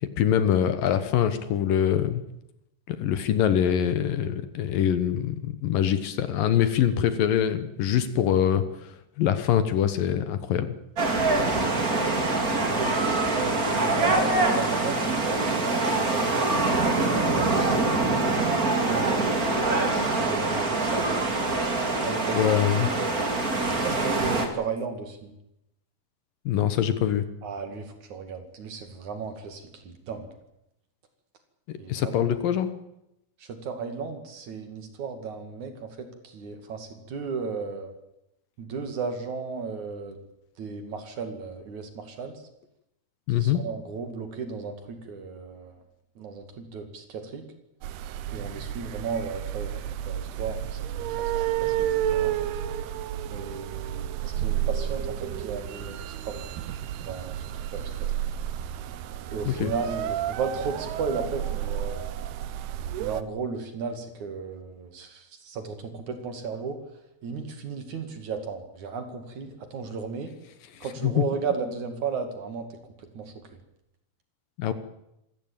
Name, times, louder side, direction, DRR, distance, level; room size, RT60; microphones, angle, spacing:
voice 1, 0.2-2.2 2.9-10.7 22.3-22.9 26.5-27.3 31.7-32.7 43.3-43.6 59.5-59.7 71.0-71.2 74.6-74.7, left 10 dB, 70° left, 12 dB, 2.7 m, -24 dB
sound 1, 11.0-24.5, right 2 dB, 25° right, 2.5 m, -24 dB
voice 2, 11.3-11.9 12.6-16.4 17.2-19.3 19.9-21.2 22.0-23.2 23.8-25.3 27.4-30.3 31.8-32.2 33.4-37.9 38.6-40.2 40.6-42.4 43.3-45.8 46.2-47.5 48.3-50.8 51.1-52.4 53.3-56.4 57.0-58.2 59.3-62.2 63.0-66.8 67.2-70.3 70.8-73.3, right 5 dB, 55° right, 7 dB, 3.4 m, -35 dB
sound 2, 47.8-63.2, right 11 dB, 85° right, 3.0 m, -31 dB
26.5 x 15.0 x 8.9 m, 0.84 s
omnidirectional pair, 4.5 m